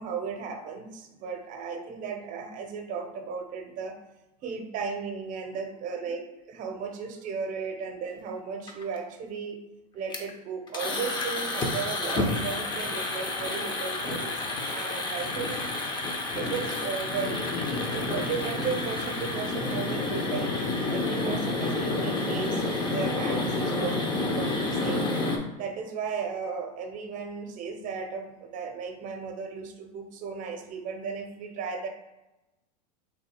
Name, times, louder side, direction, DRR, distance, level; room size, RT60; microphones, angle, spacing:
voice 1, 0.0-4.0 4.4-9.6 9.9-14.3 14.6-15.7 16.3-25.1 25.6-31.9, right 5 dB, 40° right, 5 dB, 0.8 m, -35 dB
sound 1, 8.7-9.0 10.1-10.3 10.7-25.4, left 2 dB, 20° left, 0.7 m, -29 dB
3.4 x 2.7 x 4.3 m, 1.0 s
supercardioid pair, 115°, 20 cm